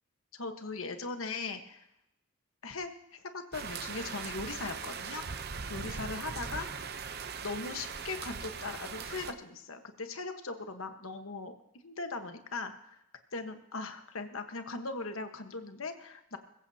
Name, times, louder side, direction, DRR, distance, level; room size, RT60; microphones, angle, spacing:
voice 1, 0.3-1.9 2.6-5.2 5.7-6.8 7.4-11.6 11.8-12.7 13.3-16.4, left 3 dB, 75° left, 7 dB, 1.3 m, -39 dB
sound 1, 3.5-9.3, right 5 dB, 45° right, 0.7 m, -40 dB
21.0 x 15.0 x 2.8 m, 0.81 s
head